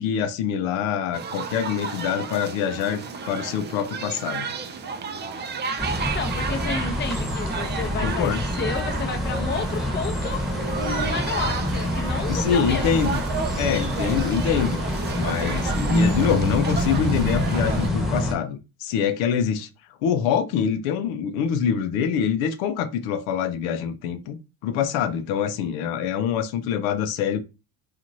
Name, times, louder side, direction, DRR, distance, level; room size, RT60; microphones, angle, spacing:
voice 1, 0.0-4.5 8.0-8.4 12.3-13.2 13.6-14.8 15.2-19.7 20.0-27.4, left 8 dB, 85° left, 0.6 m, -25 dB
sound 1, 1.1-17.9, right 5 dB, 25° right, 0.3 m, -33 dB
sound 2, 5.8-18.3, equal, ahead, 1.0 m, -26 dB
voice 2, 6.1-10.4 10.8-13.0, left 5 dB, 25° left, 0.6 m, -31 dB
2.9 x 2.5 x 2.5 m
supercardioid pair, 90°, 48 cm